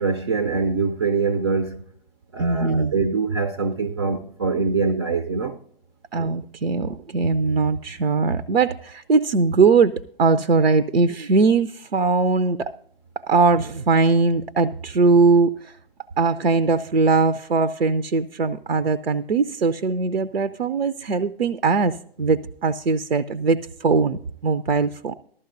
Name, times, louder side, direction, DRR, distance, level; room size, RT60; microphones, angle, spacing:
voice 1, 0.0-1.9 2.3-5.6, right 4 dB, 25° right, 0.4 m, -24 dB
voice 2, 2.4-2.9 6.1-12.7 13.2-15.8 16.2-25.1, right 4 dB, 75° right, 0.6 m, -20 dB
14.5 x 13.0 x 2.6 m
figure-of-eight pair, 125°, 30 cm